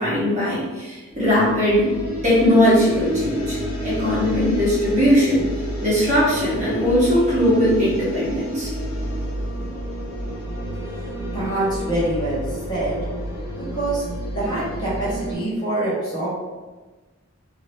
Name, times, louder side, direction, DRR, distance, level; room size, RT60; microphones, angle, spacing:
voice 1, 0.0-1.9 2.2-3.6 3.8-5.5 5.8-8.7, equal, 35° right, -8 dB, 1.2 m, -19 dB
sound 1, 1.1-15.3, equal, 55° left, 1.0 m, -30 dB
voice 2, 11.3-12.4 12.7-13.0 13.7-14.0 14.3-16.3, right 1 dB, 20° left, -8 dB, 1.0 m, -25 dB
2.8 x 2.7 x 3.0 m, 1.2 s
head